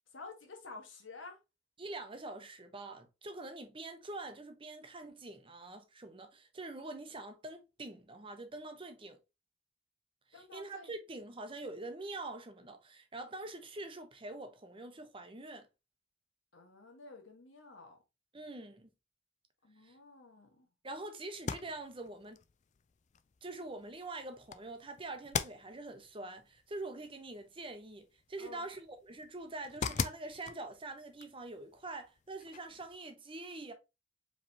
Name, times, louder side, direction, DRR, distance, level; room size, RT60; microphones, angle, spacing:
voice 1, 0.1-1.4 10.3-10.9 16.5-18.0 19.6-20.7 28.4-28.7, left 3 dB, 90° left, 1.4 m, -51 dB
voice 2, 1.8-9.2 10.3-15.7 18.3-18.9 19.8-20.0 20.8-22.4 23.4-33.7, right 2 dB, 30° right, 0.8 m, -45 dB
sound 1, 21.3-33.0, left 6 dB, 40° left, 0.4 m, -44 dB
5.0 x 3.4 x 2.8 m
head